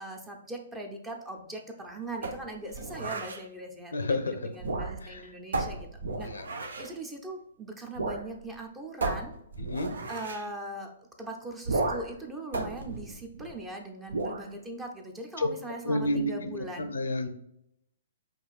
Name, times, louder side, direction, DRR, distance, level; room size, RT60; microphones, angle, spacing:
voice 1, 0.0-6.3 6.8-9.4 10.1-10.9 11.2-16.9, right 1 dB, 15° right, 3 dB, 0.6 m, -40 dB
sound 1, 2.2-3.4 4.5-5.2 5.5-6.9 8.0-8.3 8.5-8.6 9.0-10.5 11.6-12.2 12.5-13.7 14.1-14.5, right 3 dB, 75° right, 0.6 m, -33 dB
voice 2, 3.9-4.5 5.0-5.3 6.2-6.5 9.7-9.9 15.4-15.5 15.8-17.3, left 1 dB, 80° left, 8 dB, 0.6 m, -30 dB
5.5 x 2.5 x 2.4 m, 0.75 s
hypercardioid pair, 125°, 0 cm